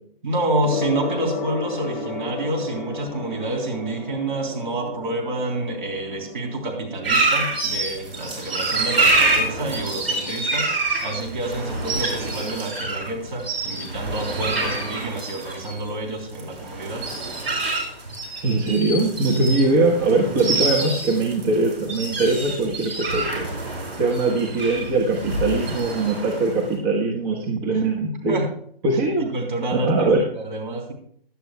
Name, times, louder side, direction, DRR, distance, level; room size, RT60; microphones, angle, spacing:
voice 1, 0.2-10.7 11.0-17.0 28.3-28.5 29.2-30.1 30.3-30.9, right 2 dB, 55° right, 0 dB, 3.6 m, -28 dB
Gong, 0.6-19.6, left 4 dB, 45° left, 1.3 m, -37 dB
sound 1, 7.0-26.7, right 2 dB, 85° right, 5.2 m, -26 dB
voice 2, 18.4-23.5 24.0-28.4 28.8-29.3 29.7-30.2, right 3 dB, 25° right, -2 dB, 1.2 m, -21 dB
16.0 x 11.0 x 2.3 m, 0.64 s
figure-of-eight pair, 135°, 30 cm